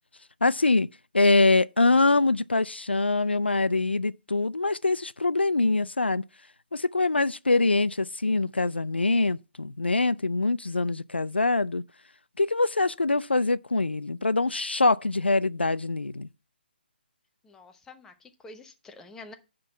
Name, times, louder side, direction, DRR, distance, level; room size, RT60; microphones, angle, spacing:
voice 1, 0.4-0.9 1.1-6.2 6.7-11.8 12.4-16.3, left 3 dB, 90° left, 0.4 m, -24 dB
voice 2, 17.4-19.3, left 3 dB, 10° left, 0.9 m, -47 dB
10.0 x 3.8 x 7.0 m
figure-of-eight pair, 140°, 6 cm